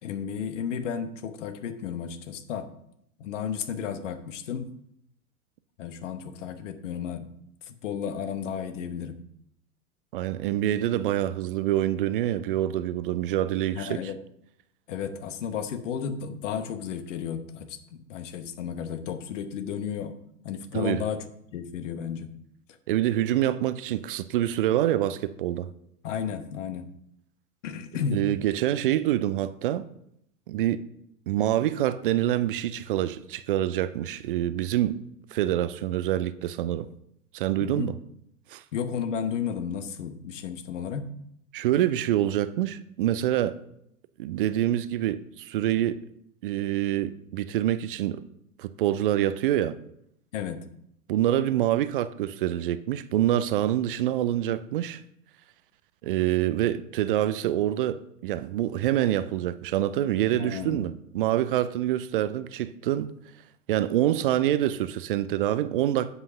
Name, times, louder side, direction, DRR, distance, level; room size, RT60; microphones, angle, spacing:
voice 1, 0.0-2.7 3.2-4.7 5.8-7.3 7.7-9.2 13.7-14.2 14.9-20.1 20.4-21.2 21.5-22.3 26.0-26.9 27.6-28.2 37.6-37.9 38.7-41.1 50.3-50.6 60.3-60.8, left 7 dB, 55° left, 1.1 m, -33 dB
voice 2, 10.1-14.0 20.7-21.0 22.9-25.7 28.1-29.8 30.5-30.8 31.3-35.0 35.3-36.9 37.3-37.9 38.5-38.6 41.5-43.6 44.2-46.0 46.4-48.2 48.6-49.8 51.1-55.0 56.0-63.1 63.7-66.1, right 12 dB, 40° right, 0.4 m, -26 dB
7.9 x 5.7 x 5.7 m
figure-of-eight pair, 95°, 45 cm